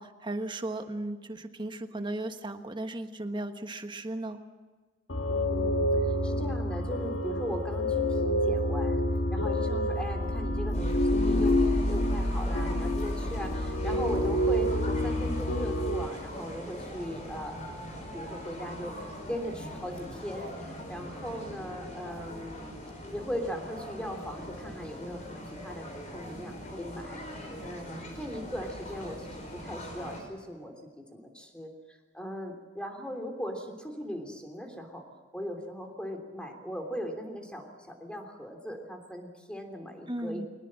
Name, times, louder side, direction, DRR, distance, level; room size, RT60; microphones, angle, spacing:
voice 1, 0.0-4.4 40.1-40.5, right 1 dB, 25° right, 7 dB, 1.3 m, -36 dB
sound 1, 5.1-16.1, left 1 dB, 75° left, 1.8 m, -28 dB
voice 2, 5.3-9.0 9.3-17.8 18.1-22.7 23.1-27.2 27.6-35.0 35.3-40.5, equal, 5° left, 4 dB, 3.2 m, -39 dB
sound 2, 10.7-30.2, equal, 40° left, 5.4 m, -42 dB
23.0 x 19.5 x 7.6 m, 1.4 s
head